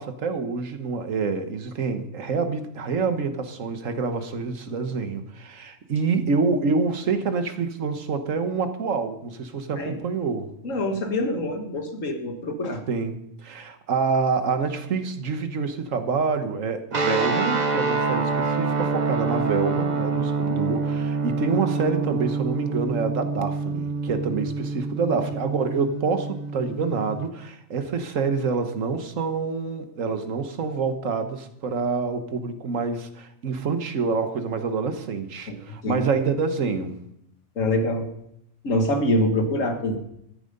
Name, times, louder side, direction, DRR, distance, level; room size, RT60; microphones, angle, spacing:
voice 1, 0.0-10.5 12.9-37.0, right 5 dB, 80° right, 8 dB, 1.6 m, -27 dB
voice 2, 10.6-12.8 20.4-20.6 35.5-35.6 35.8-36.1 37.6-38.1 38.6-40.0, left 1 dB, 80° left, 5 dB, 2.0 m, -25 dB
sound 1, 16.9-27.3, right 4 dB, 35° right, 1.2 m, -26 dB
13.5 x 10.0 x 5.3 m, 0.78 s
omnidirectional pair, 1.3 m